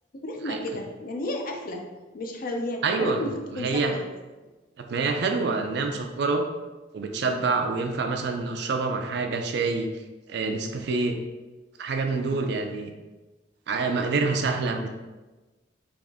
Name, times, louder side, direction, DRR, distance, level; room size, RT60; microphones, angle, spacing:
voice 1, 0.1-1.8 2.1-4.0, left 1 dB, 50° left, 2 dB, 0.5 m, -32 dB
voice 2, 2.8-4.0 4.8-6.4 6.9-9.9 10.3-11.2 11.8-12.9 13.7-14.9, right 4 dB, 65° right, 4 dB, 0.4 m, -26 dB
3.5 x 2.5 x 3.5 m, 1.2 s
head